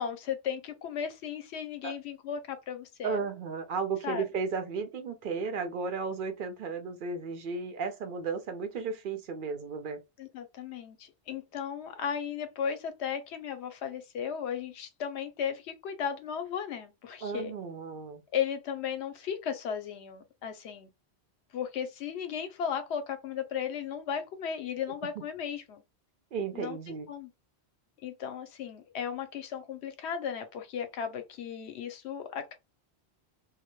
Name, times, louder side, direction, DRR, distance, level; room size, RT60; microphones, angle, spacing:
voice 1, 0.0-3.2 4.0-4.2 10.2-17.5 18.3-20.9 21.5-25.8 26.5-27.3 28.0-32.6, left 8 dB, 80° left, 0.8 m, -35 dB
voice 2, 3.0-10.0 17.2-18.2 26.3-27.1, right 5 dB, 60° right, 0.6 m, -34 dB
2.2 x 2.1 x 2.9 m
omnidirectional pair, 1.1 m